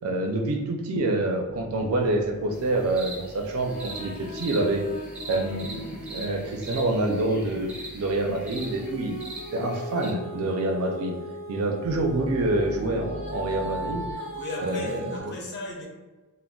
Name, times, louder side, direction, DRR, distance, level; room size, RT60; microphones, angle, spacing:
voice 1, 0.0-4.8 5.3-9.2 9.5-11.2 11.5-14.0 14.6-15.3, right 2 dB, 65° right, 3 dB, 0.4 m, -27 dB
sound 1, 1.5-9.5 11.8-14.1, left 1 dB, 35° right, 0.8 m, -44 dB
sound 2, 2.5-10.1, right 2 dB, 5° right, 1.0 m, -42 dB
Female singing, 3.5-7.3 8.5-15.2, right 1 dB, 85° left, 0.9 m, -39 dB
voice 2, 14.3-15.9, left 3 dB, 50° left, -2 dB, 0.5 m, -36 dB
3.6 x 2.0 x 2.2 m, 1.2 s
head